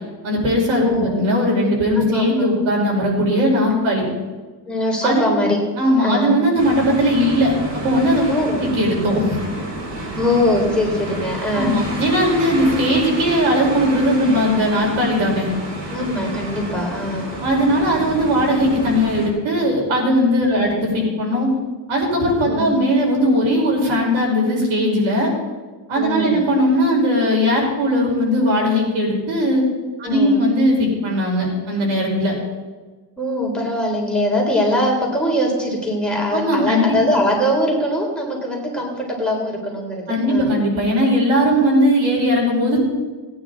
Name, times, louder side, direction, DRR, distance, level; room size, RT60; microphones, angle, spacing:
voice 1, 0.2-4.0 5.0-5.3 5.8-8.2 8.6-9.4 11.5-15.5 17.4-20.7 20.9-21.5 21.9-25.3 25.9-29.6 30.0-32.3 36.3-37.0 40.1-42.8, equal, 80° right, -2 dB, 5.1 m, -18 dB
voice 2, 0.8-1.2 1.9-2.5 4.7-5.6 6.0-6.3 8.3-8.7 10.2-11.8 15.9-17.3 20.5-20.8 22.5-22.7 26.0-26.5 30.0-30.4 33.2-40.6, left 1 dB, ahead, -2 dB, 3.6 m, -22 dB
sound 1, 6.6-19.3, right 1 dB, 65° right, 4.2 m, -30 dB
19.0 x 9.7 x 4.1 m, 1.3 s
cardioid pair, 125°, 46 cm